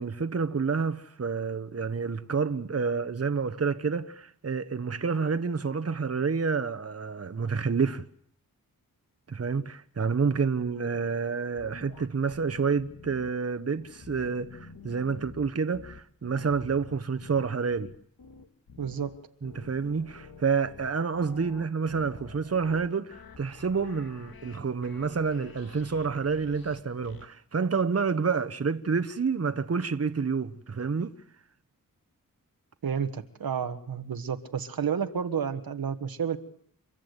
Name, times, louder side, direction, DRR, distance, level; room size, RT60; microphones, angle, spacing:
voice 1, 0.0-8.0 9.3-17.9 19.4-31.1, right 5 dB, 45° right, 1.1 m, -29 dB
sound 1, 11.6-13.3 13.8-27.3, left 4 dB, 90° left, 1.9 m, -49 dB
voice 2, 18.8-19.1 32.8-36.4, right 7 dB, 80° right, 1.4 m, -31 dB
30.0 x 14.0 x 8.2 m
cardioid pair, 55°, 35 cm